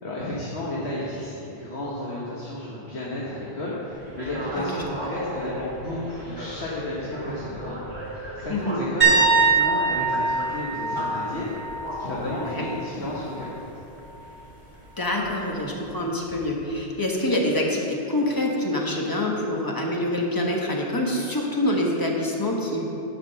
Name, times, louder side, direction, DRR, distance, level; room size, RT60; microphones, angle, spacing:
voice 1, 0.0-13.6, left 1 dB, 75° left, -6 dB, 1.5 m, -33 dB
sound 1, 3.9-15.8, equal, 80° right, 2.2 m, -37 dB
voice 2, 4.5-5.1 8.5-8.8 12.3-12.7 15.0-22.9, left 1 dB, 20° left, -1 dB, 1.2 m, -26 dB
sound 2, 9.0-12.8 13.1-13.4 16.3-16.4, right 4 dB, 10° right, 1.9 m, -23 dB
10.5 x 5.0 x 6.8 m, 2.9 s
omnidirectional pair, 1.1 m